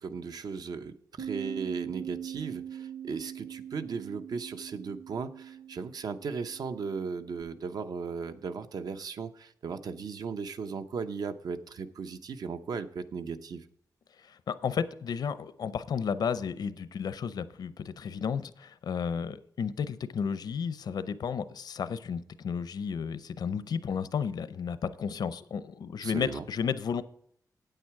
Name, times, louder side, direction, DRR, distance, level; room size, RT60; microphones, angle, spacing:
voice 1, 0.0-13.6 26.0-26.5, right 5 dB, 65° right, 0.7 m, -37 dB
Bass guitar, 1.2-7.4, right 9 dB, 30° right, 0.6 m, -42 dB
voice 2, 14.2-27.0, left 6 dB, 70° left, 0.6 m, -33 dB
9.0 x 8.9 x 4.7 m
wide cardioid pair, 170°, 7 cm